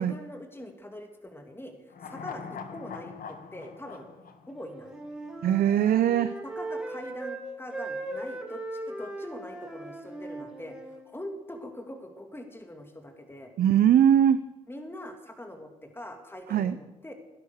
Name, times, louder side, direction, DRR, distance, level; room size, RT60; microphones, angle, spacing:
voice 1, 0.0-1.7 2.0-4.1 4.5-5.0 6.4-10.8 11.0-13.5 14.7-17.1, left 1 dB, 15° left, 5 dB, 2.7 m, -43 dB
sound 1, 1.9-5.3 5.6-5.7, left 6 dB, 60° left, 1.7 m, -43 dB
Wind instrument woodwind instrument, 4.6-7.4 7.7-11.0, right 2 dB, 5° right, 4.9 m, -38 dB
voice 2, 5.4-6.3 13.6-14.4 16.5-16.8, right 10 dB, 65° right, 12 dB, 0.7 m, -21 dB
18.5 x 10.5 x 6.6 m, 1.0 s
hypercardioid pair, 50°, 17 cm